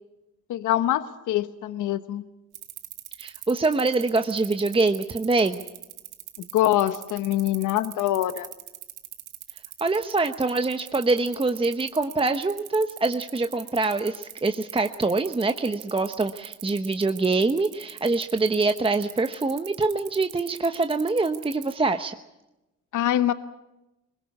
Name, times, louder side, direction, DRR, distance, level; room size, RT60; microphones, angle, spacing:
voice 1, 0.5-2.2 6.5-8.5 22.9-23.3, left 13 dB, 80° left, 12 dB, 1.1 m, -24 dB
sound 1, 2.5-21.7, right 14 dB, 85° right, 1.6 m, -41 dB
voice 2, 3.2-5.6 9.8-22.1, right 3 dB, 20° right, 7 dB, 1.1 m, -24 dB
22.0 x 21.0 x 8.4 m, 0.95 s
cardioid pair, 90°, 30 cm